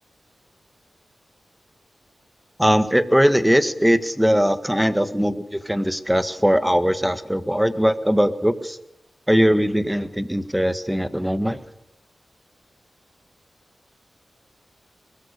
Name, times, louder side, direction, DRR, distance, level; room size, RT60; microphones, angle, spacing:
voice 1, 2.6-8.8 9.3-11.6, equal, 5° right, 11 dB, 1.7 m, -20 dB
23.0 x 21.5 x 6.8 m, 0.86 s
cardioid pair, 60°, 0 cm